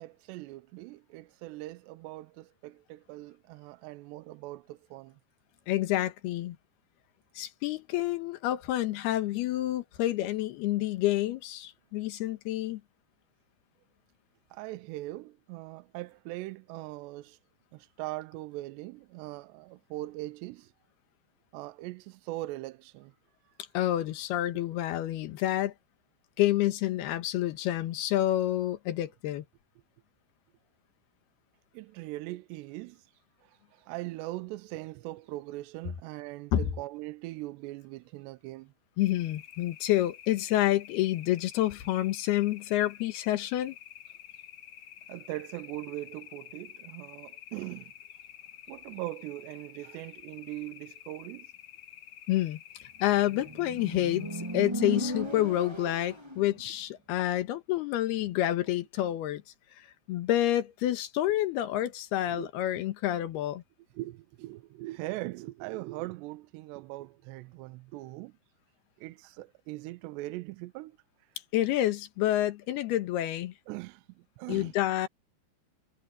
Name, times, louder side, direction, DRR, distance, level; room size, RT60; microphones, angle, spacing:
voice 1, 0.0-5.1 14.5-17.4 17.7-20.7 21.5-23.1 31.7-33.1 33.7-38.7 45.1-47.9 48.7-51.5 62.3-62.5 64.0-68.3 69.0-71.0 73.7-74.1 74.4-74.7, right 18 dB, 85° right, 2.8 m, -40 dB
voice 2, 5.7-6.6 7.4-12.8 23.7-25.7 26.4-29.4 36.5-36.6 39.0-43.8 52.3-59.4 60.1-63.6 71.5-73.5 74.5-75.1, left 14 dB, 75° left, 3.1 m, -28 dB
sound 1, 39.0-54.7, left 11 dB, 60° left, 2.4 m, -50 dB
Motorcycle, 53.0-56.5, right 1 dB, 15° right, 1.0 m, -36 dB
omnidirectional pair, 4.8 m